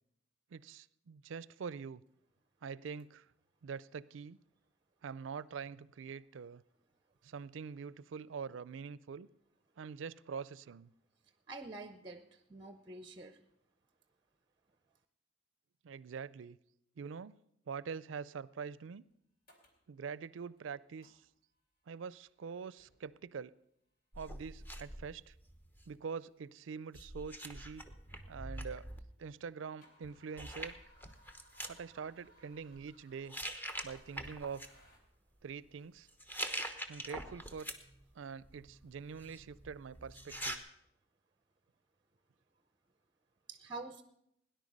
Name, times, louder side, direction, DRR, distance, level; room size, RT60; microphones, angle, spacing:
voice 1, 0.5-2.0 2.6-3.3 3.6-4.4 5.0-6.6 7.2-9.3 9.8-10.9 15.8-16.6 17.0-17.4 17.7-19.0 19.9-21.2 21.9-23.5 24.2-25.3 25.9-27.8 28.3-28.9 29.2-30.7 31.7-33.3 33.8-34.6 35.4-36.1 36.9-37.7 38.1-40.6, right 6 dB, 75° right, 20 dB, 0.4 m, -44 dB
voice 2, 11.5-13.4 43.5-44.0, right 3 dB, 25° right, 10 dB, 0.6 m, -47 dB
phils car, 19.0-19.1 19.5-19.9 20.3-20.6 21.0-21.6 22.1-22.4 22.8-23.5 24.4-24.5 25.4-25.5 25.9-26.0 26.7-26.8 27.0-28.9 29.3-35.0, left 1 dB, 50° left, 2.9 m, -66 dB
sound 1, 24.1-26.0 26.9-29.0 30.0-30.1 30.4-31.7 32.5-32.8 33.3-34.7 36.1-38.0 38.4-40.6, equal, 10° left, 1.0 m, -44 dB
18.0 x 10.5 x 5.3 m, 0.77 s
head